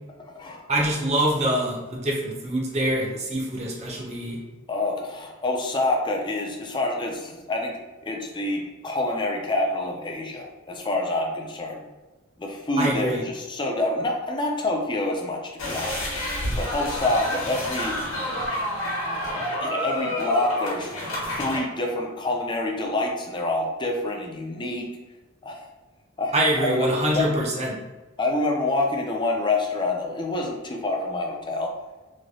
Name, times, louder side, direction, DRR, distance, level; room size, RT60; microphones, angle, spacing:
voice 1, 0.7-4.4 12.8-13.2 26.3-27.8, right 1 dB, 35° right, -1 dB, 0.7 m, -24 dB
voice 2, 4.7-7.8 8.0-11.8 12.4-16.1 16.6-18.0 19.6-20.9 21.2-24.9 25.4-25.6 26.2-26.3 26.6-27.3 28.2-31.7, left 2 dB, 25° left, 1 dB, 0.4 m, -27 dB
sound 1, 15.6-21.6, left 1 dB, 75° left, 1.1 m, -29 dB
3.1 x 2.7 x 2.6 m, 1.2 s
head